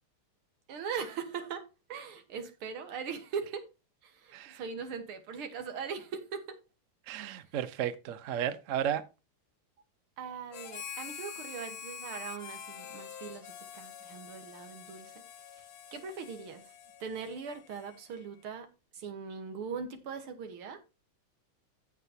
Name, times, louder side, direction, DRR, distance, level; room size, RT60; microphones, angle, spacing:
voice 1, 0.7-1.6 1.9-3.7 4.0-6.6 10.2-15.1 15.9-16.7 17.0-18.7 18.9-20.8, right 6 dB, 85° right, 2.2 m, -40 dB
voice 2, 7.1-9.0, right 10 dB, 60° right, 0.8 m, -33 dB
Harmonica, 10.5-18.2, left 8 dB, 85° left, 1.9 m, -46 dB
15.0 x 6.1 x 2.8 m
omnidirectional pair, 2.4 m